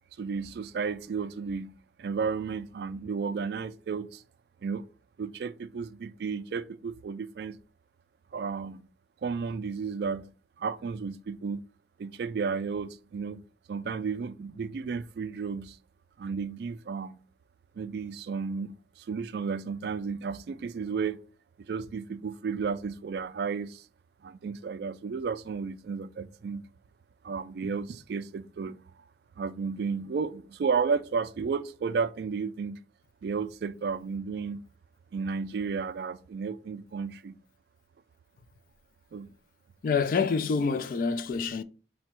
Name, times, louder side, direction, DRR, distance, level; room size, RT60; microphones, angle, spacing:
voice 1, 0.2-1.7 2.0-4.2 4.6-4.9 5.2-7.6 8.3-8.9 9.2-11.6 12.0-13.4 13.7-15.8 16.2-17.2 17.8-21.2 21.7-23.9 24.2-26.6 27.2-28.8 29.4-32.8 33.2-34.6 35.1-37.3 39.1-39.3, right 5 dB, 65° right, 0.3 m, -33 dB
voice 2, 39.8-41.6, left 5 dB, 50° left, 0.3 m, -27 dB
4.0 x 2.2 x 4.4 m
head